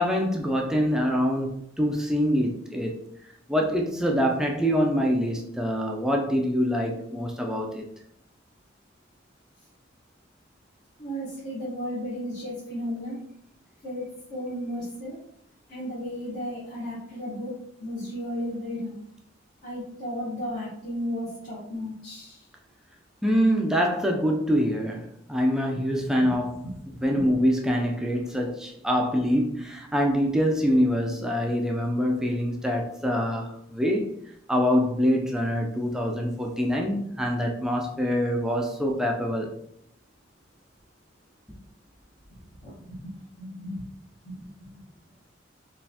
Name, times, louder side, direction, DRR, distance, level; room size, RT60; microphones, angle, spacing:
voice 1, 0.0-3.0 3.5-7.9 23.2-26.7 27.0-34.1 34.5-39.5, equal, 5° right, 0.3 m, -25 dB
voice 2, 11.0-13.2 13.8-15.2 15.7-17.5 17.8-19.0 19.6-22.4 27.0-27.2 42.6-43.1 43.4-43.8 44.3-44.4, equal, 50° left, 1.0 m, -34 dB
4.0 x 2.4 x 2.7 m
head